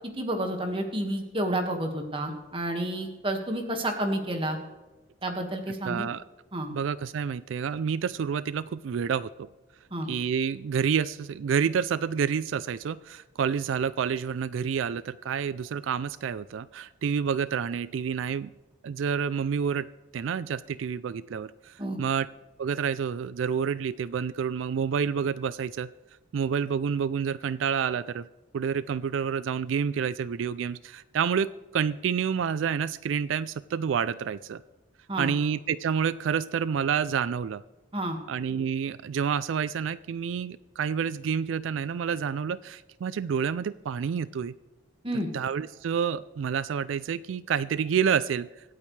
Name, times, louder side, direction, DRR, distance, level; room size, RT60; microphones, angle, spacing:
voice 1, 0.2-4.6 5.2-6.1 6.5-6.7 9.9-10.1 21.8-22.0 35.1-35.3 37.9-38.2 45.0-45.3, right 1 dB, 25° right, 4 dB, 1.7 m, -30 dB
voice 2, 5.8-6.2 6.7-9.5 10.1-18.5 18.8-19.9 20.1-22.3 22.6-25.9 26.3-28.3 28.5-34.6 35.2-37.6 38.3-44.5 45.3-48.5, right 7 dB, 85° right, 17 dB, 0.3 m, -28 dB
25.0 x 8.6 x 3.2 m, 1.2 s
head